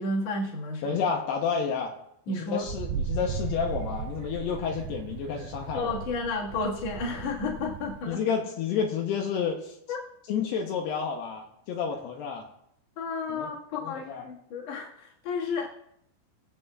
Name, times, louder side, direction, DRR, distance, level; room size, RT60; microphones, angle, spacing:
voice 1, 0.0-1.0 2.3-2.6 5.7-8.2 9.9-10.0 13.0-15.7, left 3 dB, 45° left, -3 dB, 2.4 m, -32 dB
voice 2, 0.8-2.0 2.3-6.0 8.1-9.8 10.3-12.5 13.3-14.3, left 6 dB, 75° left, 1 dB, 2.8 m, -30 dB
Wind, 2.6-8.1, right 6 dB, 85° right, 2.3 m, -36 dB
22.0 x 7.8 x 2.4 m, 0.74 s
omnidirectional pair, 5.0 m